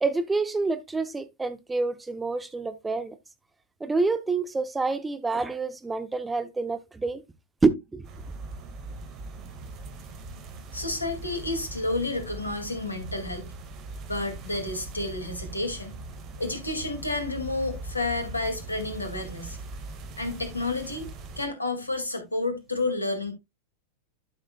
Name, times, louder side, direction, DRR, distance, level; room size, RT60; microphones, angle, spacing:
voice 1, 0.0-3.2 3.8-7.2 7.6-8.1, right 3 dB, 10° right, 0.8 m, -27 dB
sound 1, 8.0-21.5, right 2 dB, 35° right, 1.7 m, -41 dB
voice 2, 10.7-13.5 14.1-15.9 16.4-19.6 20.2-21.1 21.4-23.3, left 2 dB, 80° left, 2.2 m, -30 dB
12.0 x 6.5 x 2.3 m
figure-of-eight pair, 90°, 0 cm